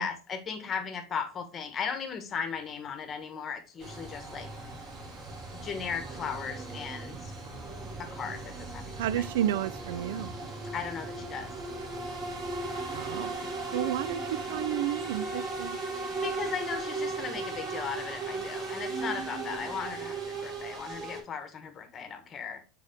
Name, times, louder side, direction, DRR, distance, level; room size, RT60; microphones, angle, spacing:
voice 1, 0.0-4.5 5.6-7.3 8.0-9.3 10.7-11.5 16.2-22.6, left 6 dB, 35° left, 1.3 m, -37 dB
sound 1, 3.8-21.2, right 3 dB, 40° right, 2.7 m, -37 dB
voice 2, 9.0-10.3 12.9-13.3 13.7-15.8, right 12 dB, 75° right, 0.3 m, -31 dB
6.4 x 4.2 x 3.6 m
hypercardioid pair, 95°, 0 cm